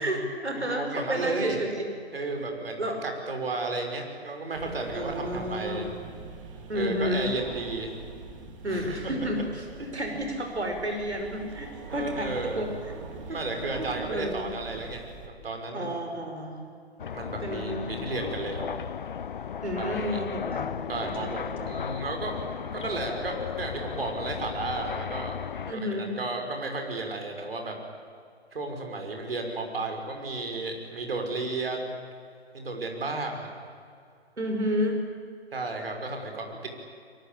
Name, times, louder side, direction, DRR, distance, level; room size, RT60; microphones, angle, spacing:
voice 1, 0.0-1.9 2.8-3.0 4.9-6.0 6.7-7.3 8.6-12.7 13.3-13.4 13.8-14.5 15.7-16.6 17.4-17.9 19.6-20.8 21.2-21.8 25.7-26.2 34.4-35.0, equal, 80° right, 3 dB, 5.5 m, -31 dB
voice 2, 0.5-1.6 2.1-5.9 6.7-8.0 8.7-9.1 9.8-10.1 11.9-12.7 13.3-16.0 17.1-18.7 19.8-20.2 20.9-25.4 25.7-27.7 28.5-32.0 32.5-33.5 35.5-36.7, right 2 dB, 60° right, 3 dB, 6.2 m, -33 dB
sound 1, 4.5-15.3, right 4 dB, 30° right, 2.6 m, -43 dB
sound 2, 17.0-25.7, left 7 dB, 50° left, 0.6 m, -35 dB
24.5 x 23.5 x 8.7 m, 2.2 s
figure-of-eight pair, 140°, 33 cm